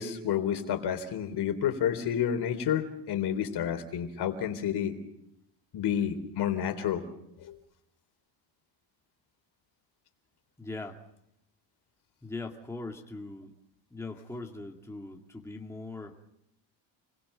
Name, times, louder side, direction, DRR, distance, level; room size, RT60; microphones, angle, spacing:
voice 1, 0.0-4.9 5.7-7.0 7.4-7.6, left 9 dB, 55° left, 7 dB, 3.8 m, -30 dB
voice 2, 10.6-11.0 12.2-13.5 13.9-16.2, left 3 dB, 5° left, 1 dB, 2.2 m, -40 dB
30.0 x 21.5 x 5.7 m, 0.80 s
cardioid pair, 135°, 48 cm